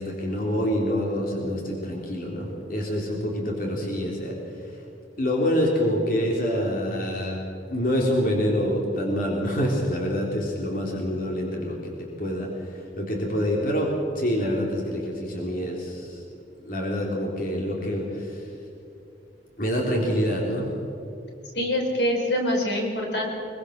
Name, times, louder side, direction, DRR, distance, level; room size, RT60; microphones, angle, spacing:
voice 1, 0.0-4.4 5.2-7.4 7.7-16.2 16.7-18.4 19.6-20.7, equal, 50° left, -1 dB, 3.5 m, -26 dB
voice 2, 21.5-23.3, left 1 dB, 75° left, 2 dB, 4.4 m, -25 dB
23.5 x 23.0 x 6.6 m, 2.8 s
head